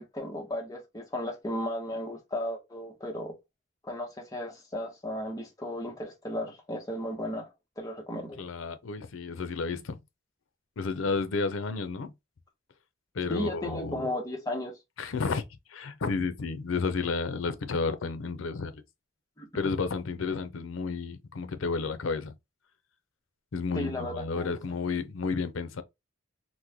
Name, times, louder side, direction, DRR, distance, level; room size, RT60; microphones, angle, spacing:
voice 1, 0.0-3.3 3.8-7.5 7.8-8.4 13.3-14.7 19.4-19.6 23.7-24.6, left 1 dB, 20° left, 0.9 m, -35 dB
voice 2, 8.4-10.0 10.8-12.1 13.1-14.0 15.0-15.4 15.7-18.8 19.5-22.3 23.5-25.8, left 4 dB, 85° left, 0.5 m, -31 dB
3.0 x 2.2 x 3.4 m
head